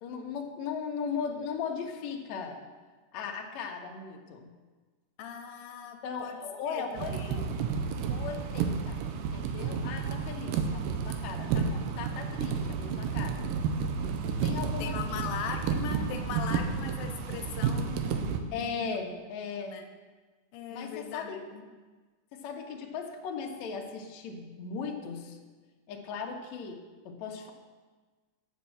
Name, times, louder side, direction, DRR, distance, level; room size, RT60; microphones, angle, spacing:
voice 1, 0.0-2.6 3.1-4.5 6.0-7.5 8.1-13.4 14.4-15.2 18.5-19.8 20.7-21.4 22.3-25.4 25.9-26.8 27.1-27.5, left 5 dB, 65° left, 1 dB, 1.9 m, -38 dB
voice 2, 5.2-6.4 6.7-7.5 14.8-19.0 19.6-19.8 20.5-21.6, left 7 dB, 85° left, 5 dB, 2.5 m, -40 dB
sound 1, 6.9-18.4, right 6 dB, 80° right, 2.2 m, -31 dB
7.2 x 6.7 x 7.6 m, 1.3 s
omnidirectional pair, 4.1 m